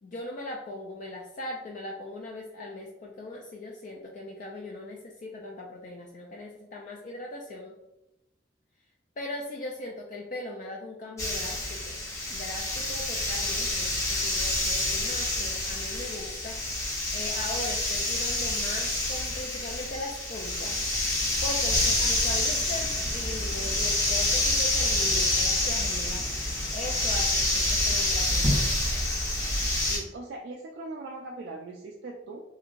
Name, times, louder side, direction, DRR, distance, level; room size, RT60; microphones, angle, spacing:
voice 1, 0.0-7.8 9.2-12.0 12.3-16.6 16.9-20.7 21.4-26.5 26.7-28.7, left 2 dB, 45° left, 0 dB, 0.3 m, -39 dB
sound 1, 11.2-30.0, left 1 dB, 15° left, 0.7 m, -27 dB
voice 2, 29.9-32.4, right 2 dB, 65° right, 0 dB, 0.3 m, -40 dB
3.0 x 2.6 x 2.4 m, 0.93 s
head